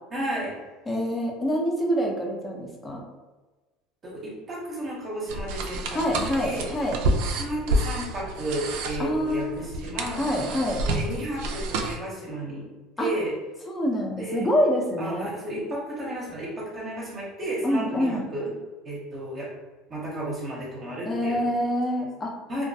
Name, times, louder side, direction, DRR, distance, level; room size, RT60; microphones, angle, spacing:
voice 1, 0.1-0.5 4.0-6.7 7.4-10.3 10.8-12.7 13.0-13.3 14.2-14.5 15.0-18.5 18.8-19.5 19.9-21.4 22.5-22.6, right 1 dB, 35° right, -4 dB, 0.7 m, -33 dB
voice 2, 0.9-3.0 5.9-7.0 9.0-9.6 10.2-10.8 13.0-13.1 13.7-15.3 17.6-18.2 21.0-22.3, equal, 25° left, 0 dB, 0.6 m, -26 dB
sound 1, 5.3-12.0, right 1 dB, 80° right, 0.3 m, -29 dB
2.3 x 2.2 x 2.6 m, 1.2 s
supercardioid pair, 105°, 0 cm